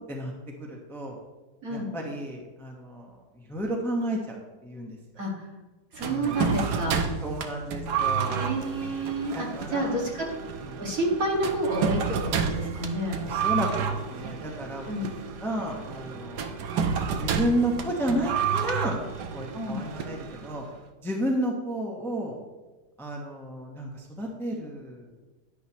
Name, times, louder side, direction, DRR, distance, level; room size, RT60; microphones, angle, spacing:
voice 1, 0.6-1.2 1.7-3.2 3.5-5.0 6.0-6.5 7.2-8.5 9.3-10.0 10.7-10.9 13.2-14.9 15.4-16.5 17.2-19.0 19.3-20.6 21.0-22.3 23.0-25.1, right 1 dB, ahead, 0 dB, 1.1 m, -32 dB
voice 2, 5.2-5.5 5.9-7.0 8.3-10.1 10.8-13.2 14.8-15.1 19.5-19.8, right 1 dB, 55° right, -2 dB, 2.5 m, -29 dB
sound 1, 6.0-20.7, right 6 dB, 80° right, 1.4 m, -30 dB
11.0 x 10.5 x 3.1 m, 1.2 s
omnidirectional pair, 1.8 m